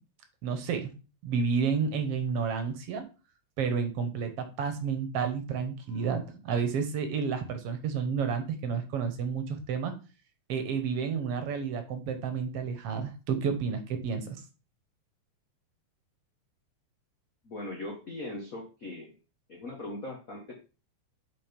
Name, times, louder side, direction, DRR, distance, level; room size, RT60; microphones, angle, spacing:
voice 1, 0.4-0.9 1.2-3.0 3.6-9.9 10.5-14.4, right 6 dB, 60° right, 8 dB, 1.8 m, -30 dB
voice 2, 17.4-19.1 19.5-20.6, left 2 dB, 75° left, 0 dB, 0.7 m, -39 dB
7.6 x 4.2 x 5.2 m, 0.32 s
omnidirectional pair, 3.6 m